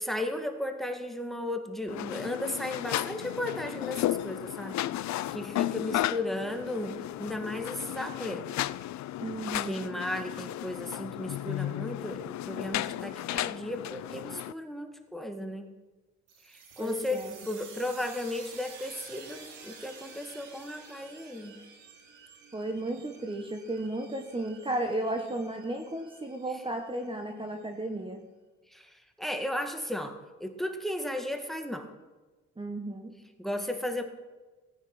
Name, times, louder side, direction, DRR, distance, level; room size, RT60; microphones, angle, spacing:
voice 1, 0.0-4.8 5.0-8.5 9.6-15.7 16.5-21.6 28.7-31.9 33.4-34.0, left 1 dB, ahead, 7 dB, 1.9 m, -35 dB
sound 1, 1.9-14.5, left 14 dB, 65° left, 0.5 m, -34 dB
voice 2, 9.2-9.8 16.8-17.4 22.5-28.2 32.6-33.1, right 1 dB, 15° right, 4 dB, 1.5 m, -34 dB
sound 2, 16.3-27.7, right 5 dB, 90° right, 3.1 m, -51 dB
16.0 x 9.6 x 6.1 m, 1.2 s
cardioid pair, 90°, 30 cm